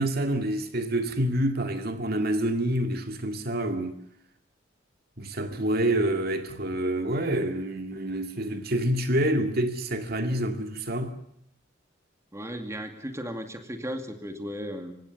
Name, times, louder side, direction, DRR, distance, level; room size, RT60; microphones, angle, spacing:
voice 1, 0.0-4.0 5.2-11.1, right 1 dB, 55° right, 2.2 m, -27 dB
voice 2, 12.3-15.0, equal, 15° right, 2.4 m, -35 dB
27.5 x 16.5 x 7.1 m
head